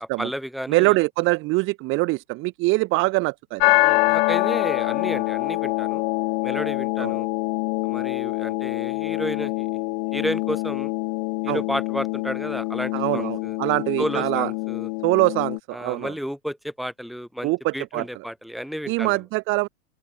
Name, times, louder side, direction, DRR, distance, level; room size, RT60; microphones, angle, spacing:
voice 1, 0.0-1.0 3.8-6.0 6.4-7.3 7.8-9.7 10.1-10.9 11.4-13.6 14.0-14.9 15.7-19.2, equal, ahead, 6.8 m, -32 dB
voice 2, 0.7-3.8 7.0-7.1 11.5-11.6 12.9-14.5 15.0-16.1 17.4-18.0 18.9-19.7, right 23 dB, 30° right, 1.2 m, -23 dB
sound 1, 3.6-15.6, left 31 dB, 40° left, 1.4 m, -25 dB
open air
hypercardioid pair, 145°, 42 cm